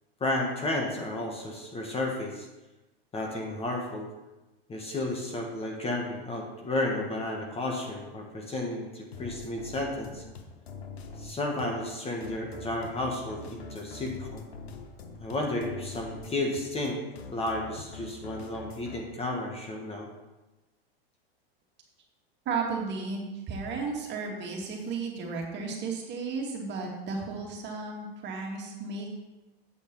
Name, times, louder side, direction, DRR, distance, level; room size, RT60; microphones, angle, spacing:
voice 1, 0.2-2.5 3.1-4.1 4.7-10.2 11.2-14.5 15.2-20.1, left 2 dB, 20° left, 0 dB, 1.5 m, -32 dB
sound 1, 9.1-19.0, left 4 dB, 85° left, 1.2 m, -44 dB
voice 2, 22.5-29.1, right 4 dB, 35° right, 0 dB, 2.3 m, -34 dB
8.4 x 5.3 x 7.0 m, 1.1 s
hypercardioid pair, 120°, 31 cm